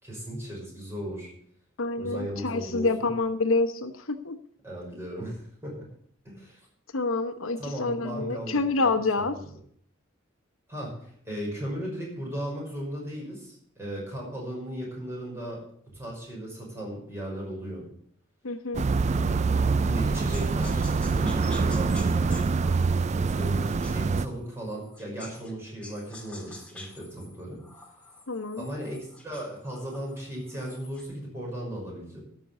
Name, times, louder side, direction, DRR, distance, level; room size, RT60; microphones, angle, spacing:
voice 1, 0.0-1.3 2.0-3.1 4.6-5.8 6.2-6.6 7.6-8.9 9.2-9.4 10.7-15.6 15.9-17.9 19.2-19.3 19.8-22.4 23.3-23.6 23.9-27.6 28.6-32.2, right 1 dB, 15° right, -3 dB, 5.8 m, -36 dB
voice 2, 1.8-4.4 6.9-9.3 18.4-18.8 28.3-28.7, left 3 dB, 80° left, 9 dB, 0.9 m, -27 dB
sound 1, 18.7-24.3, right 4 dB, 35° right, 0.4 m, -25 dB
sound 2, 20.3-25.5 25.8-31.1, left 2 dB, 5° left, 2.1 m, -48 dB
13.5 x 6.0 x 8.2 m, 0.63 s
head